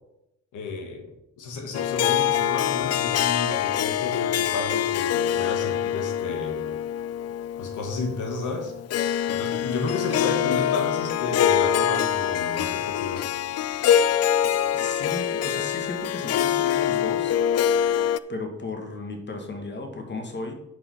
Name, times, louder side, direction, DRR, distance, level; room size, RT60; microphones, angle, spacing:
voice 1, 0.5-1.1 1.4-6.8 7.6-8.7 9.3-13.3, left 3 dB, 80° left, 3 dB, 1.6 m, -32 dB
Harp, 1.7-18.2, left 10 dB, 55° left, 0.5 m, -24 dB
voice 2, 14.7-17.4 18.3-20.5, left 3 dB, 35° left, 4 dB, 2.1 m, -34 dB
9.7 x 5.5 x 5.6 m, 0.85 s
cardioid pair, 90°, 30 cm